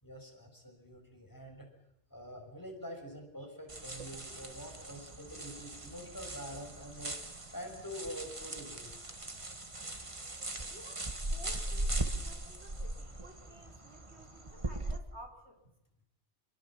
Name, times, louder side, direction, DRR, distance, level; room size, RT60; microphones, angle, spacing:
voice 1, 0.0-1.7 2.1-7.2 7.5-9.0, equal, 15° left, 2 dB, 6.3 m, -46 dB
sound 1, 3.7-15.0, right 2 dB, 30° right, 1.8 m, -39 dB
voice 2, 10.7-15.7, right 1 dB, 75° right, 2 dB, 4.9 m, -55 dB
26.5 x 23.5 x 7.4 m, 0.82 s
omnidirectional pair, 1.1 m